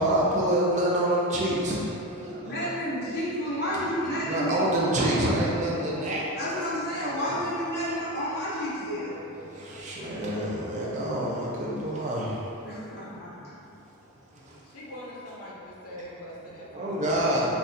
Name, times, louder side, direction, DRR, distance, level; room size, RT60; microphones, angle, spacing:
voice 1, 0.0-1.8 2.1-2.7 4.2-6.4 7.0-7.4 8.1-8.2 9.1-12.4 14.3-14.6 16.7-17.6, right 1 dB, 35° right, -4 dB, 0.4 m, -27 dB
voice 2, 2.4-5.1 6.3-9.2 12.6-13.5, equal, 45° left, -7 dB, 0.7 m, -31 dB
voice 3, 14.6-17.3, equal, 85° left, -5 dB, 0.5 m, -43 dB
4.0 x 2.3 x 2.5 m, 2.7 s
head